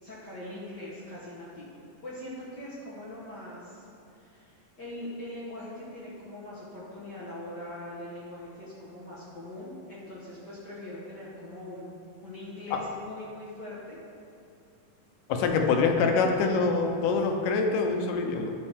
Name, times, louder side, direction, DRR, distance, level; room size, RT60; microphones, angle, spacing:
voice 1, 0.0-1.7 2.0-14.0, left 1 dB, 65° left, -8 dB, 1.0 m, -42 dB
voice 2, 15.3-18.5, left 4 dB, 80° left, 3 dB, 2.3 m, -25 dB
12.5 x 5.4 x 3.5 m, 2.5 s
omnidirectional pair, 3.8 m